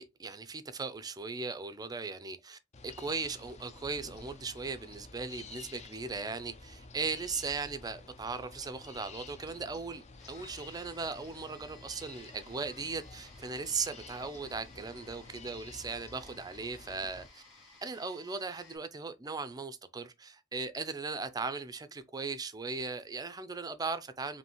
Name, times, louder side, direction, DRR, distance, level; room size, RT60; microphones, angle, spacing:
voice 1, 0.0-17.4 17.8-24.4, right 4 dB, 20° right, 0.4 m, -38 dB
sound 1, 2.7-17.3, left 3 dB, 35° left, 0.5 m, -51 dB
sound 2, 10.2-18.8, left 2 dB, 65° left, 1.8 m, -58 dB
5.3 x 2.7 x 3.0 m
head